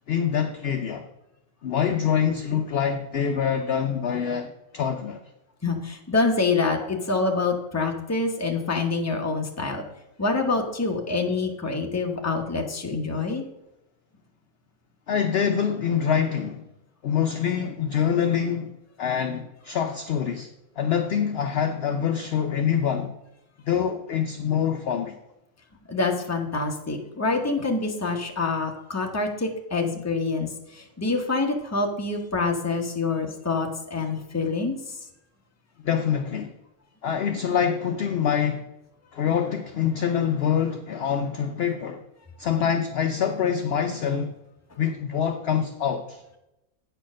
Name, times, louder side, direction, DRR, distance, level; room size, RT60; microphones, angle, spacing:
voice 1, 0.1-1.1 1.6-5.2 15.1-16.6 17.0-18.7 19.0-20.5 20.8-23.1 23.6-25.2 35.8-36.5 37.0-38.7 39.1-42.0 42.4-44.3 44.8-46.2, left 8 dB, 60° left, 6 dB, 0.7 m, -25 dB
voice 2, 5.6-9.9 10.2-13.4 25.9-34.8, left 3 dB, 15° left, 2 dB, 0.8 m, -26 dB
8.9 x 4.4 x 6.2 m, 0.90 s
omnidirectional pair, 1.5 m